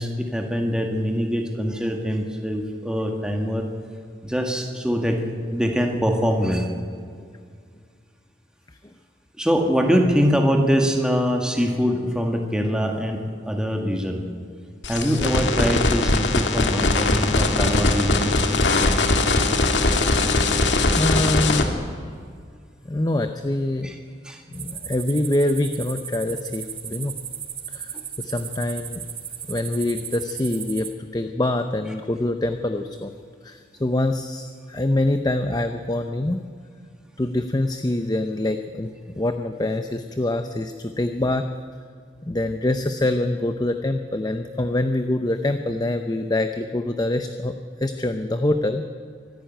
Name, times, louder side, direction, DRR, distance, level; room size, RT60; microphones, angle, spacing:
voice 1, 0.0-3.7 4.2-5.2 5.5-6.7 9.4-14.2 14.9-18.3 23.8-24.0 24.2-24.4 27.9-28.0, equal, 5° right, 2 dB, 1.8 m, -23 dB
sound 1, 14.8-21.6, left 2 dB, 85° left, 1.9 m, -20 dB
voice 2, 21.0-21.8 22.8-23.9 24.5-27.2 27.7-29.0 29.5-33.1 33.4-36.4 37.2-41.5 42.3-47.5 47.8-48.8, left 1 dB, 20° left, 7 dB, 0.7 m, -25 dB
sound 2, 24.5-30.9, right 8 dB, 30° right, 1.5 m, -36 dB
24.5 x 11.5 x 9.2 m, 2.1 s
head